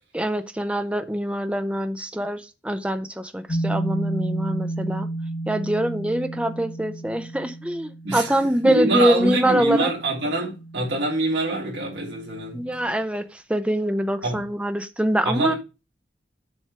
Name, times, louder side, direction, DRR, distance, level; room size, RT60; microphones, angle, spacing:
voice 1, 0.1-5.1 5.5-9.9 12.5-15.5, right 1 dB, 5° right, 0.6 m, -24 dB
sound 1, 3.5-13.0, right 2 dB, 50° left, 1.2 m, -33 dB
voice 2, 8.6-12.6 14.2-14.4 15.2-15.6, right 2 dB, 70° right, 3.3 m, -25 dB
7.3 x 5.5 x 4.6 m
head